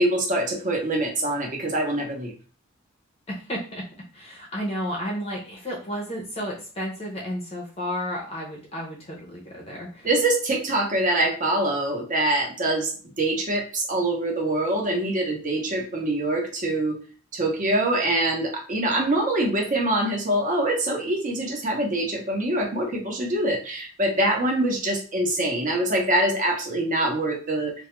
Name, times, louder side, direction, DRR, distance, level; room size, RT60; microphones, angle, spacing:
voice 1, 0.0-2.3 10.0-12.9 13.2-17.0 17.3-27.7, right 1 dB, 40° right, 1 dB, 0.7 m, -24 dB
voice 2, 3.3-3.8 4.1-10.1, equal, 30° left, -2 dB, 0.5 m, -32 dB
2.2 x 2.1 x 2.9 m, 0.38 s
head